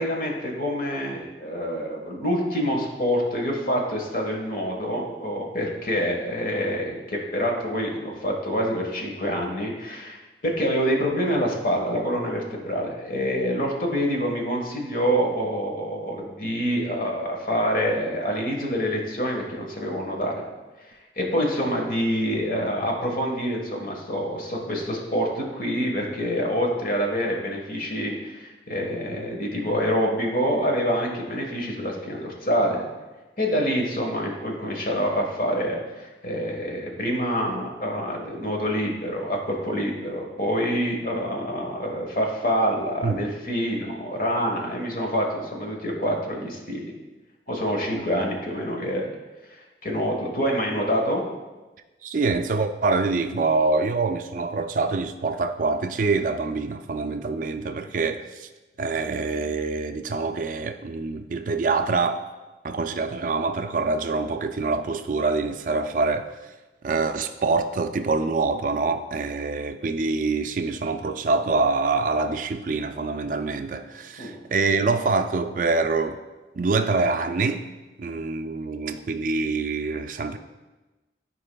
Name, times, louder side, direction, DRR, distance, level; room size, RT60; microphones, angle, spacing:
voice 1, 0.0-20.5 21.1-32.9 33.4-46.8 47.5-49.0 49.8-51.2 74.2-74.4, equal, 50° left, 1.3 m, -26 dB
voice 2, 43.0-43.4 47.9-48.0 52.0-58.5 58.8-62.2 62.6-66.3 66.8-76.2 76.6-77.7 78.0-80.4, right 3 dB, 45° right, 0.3 m, -25 dB
13.0 x 4.8 x 2.3 m
head